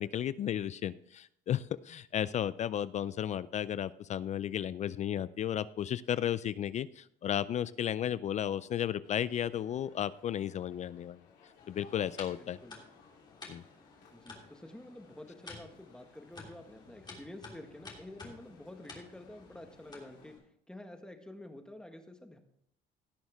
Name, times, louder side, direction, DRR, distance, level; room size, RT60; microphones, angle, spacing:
voice 1, 0.0-11.2 11.7-12.6 13.5-13.6, left 10 dB, 45° left, 17 dB, 0.4 m, -34 dB
Male speech man speaking, 9.0-20.4, left 5 dB, 80° left, 3.3 m, -61 dB
sound 1, 11.6-20.4, left 3 dB, 25° left, 3.1 m, -52 dB
voice 2, 12.4-12.8 14.1-20.3 20.7-22.4, left 1 dB, 5° left, 5 dB, 1.5 m, -49 dB
17.5 x 6.4 x 3.5 m, 0.70 s
cardioid pair, 110°, 17 cm